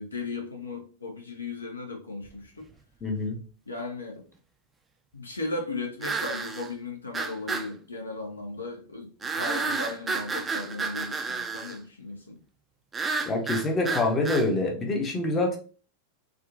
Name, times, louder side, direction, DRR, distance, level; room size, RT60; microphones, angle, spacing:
voice 1, 0.0-2.7 3.7-4.2 5.1-12.4, left 3 dB, 80° left, 2 dB, 0.6 m, -36 dB
sound 1, 2.4-2.5 6.0-6.7 7.1-7.7 9.2-11.8 12.9-14.5, right 4 dB, 15° right, 0.4 m, -31 dB
voice 2, 3.0-3.4 13.3-15.6, left 2 dB, 20° left, 2 dB, 0.7 m, -26 dB
3.6 x 2.2 x 2.5 m, 0.39 s
figure-of-eight pair, 90°, 0 cm